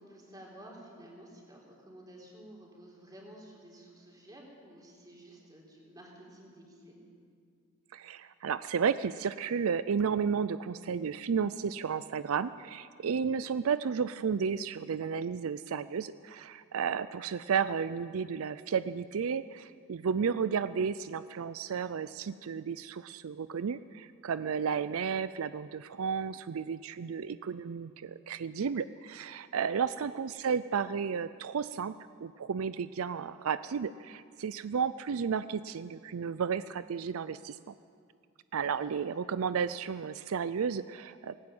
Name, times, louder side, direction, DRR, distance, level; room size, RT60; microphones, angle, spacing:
voice 1, 0.0-7.0 29.9-30.1 38.7-38.9, right 1 dB, 20° right, -1 dB, 4.1 m, -52 dB
voice 2, 7.9-31.9 32.2-37.6 38.5-41.4, right 6 dB, 75° right, 14 dB, 0.4 m, -33 dB
18.5 x 16.0 x 8.8 m, 2.2 s
head